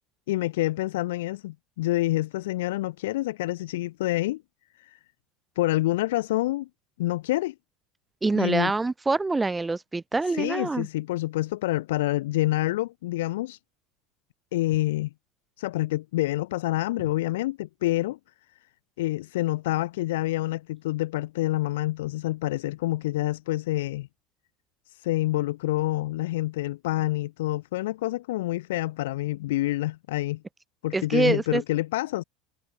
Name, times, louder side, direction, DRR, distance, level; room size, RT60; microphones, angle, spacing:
voice 1, 0.3-4.4 4.8-5.0 5.6-6.7 7.0-7.5 8.3-8.7 10.3-13.6 14.5-15.1 15.6-18.2 19.0-24.1 24.9-30.4 30.8-32.2, left 17 dB, 85° left, 0.7 m, -27 dB
voice 2, 8.2-10.9 30.9-31.6, right 3 dB, 15° right, 1.0 m, -25 dB
supercardioid pair, 115°, 0 cm